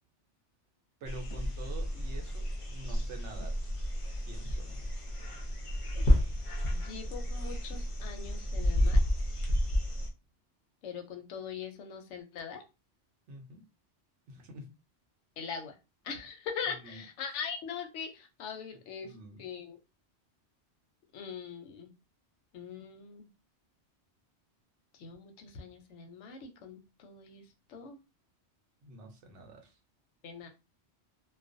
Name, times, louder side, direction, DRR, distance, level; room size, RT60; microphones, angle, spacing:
sound 1, 1.0-10.1, equal, 45° left, 0.5 m, -31 dB
voice 1, 1.0-2.5 2.7-3.6 4.2-4.7 13.3-13.6 14.3-14.7 16.8-17.0 19.0-19.4 28.8-29.7, right 1 dB, 85° right, 1.0 m, -47 dB
voice 2, 6.7-9.0 10.8-12.6 15.4-15.7 16.0-19.1 19.4-19.8 21.1-21.9 22.5-23.3 24.9-28.0 30.2-30.5, left 6 dB, 90° left, 0.9 m, -41 dB
2.4 x 2.1 x 2.5 m
omnidirectional pair, 1.2 m